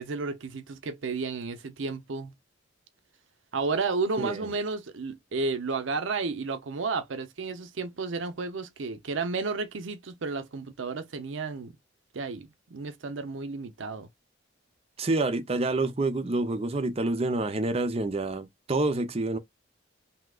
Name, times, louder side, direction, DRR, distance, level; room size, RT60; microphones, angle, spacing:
voice 1, 0.0-2.3 3.5-11.7 12.1-14.1, right 4 dB, 70° right, 0.6 m, -32 dB
voice 2, 15.0-19.4, right 2 dB, 30° right, 0.6 m, -27 dB
3.5 x 2.8 x 2.3 m
head